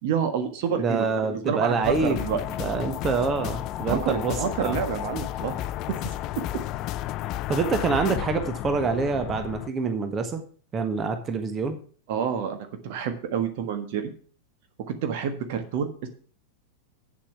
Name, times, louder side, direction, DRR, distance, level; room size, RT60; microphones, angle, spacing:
voice 1, 0.0-2.4 3.9-5.7 12.1-12.6 12.8-14.1 14.9-16.1, right 7 dB, 50° right, 7 dB, 1.5 m, -28 dB
voice 2, 0.8-2.2 2.6-4.3 4.6-4.8 7.5-10.4 10.7-11.8, right 4 dB, 25° right, 8 dB, 1.4 m, -26 dB
sound 1, 1.8-9.7, left 13 dB, 40° left, 0.4 m, -32 dB
8.7 x 7.5 x 6.0 m, 0.43 s
figure-of-eight pair, 90°, 0 cm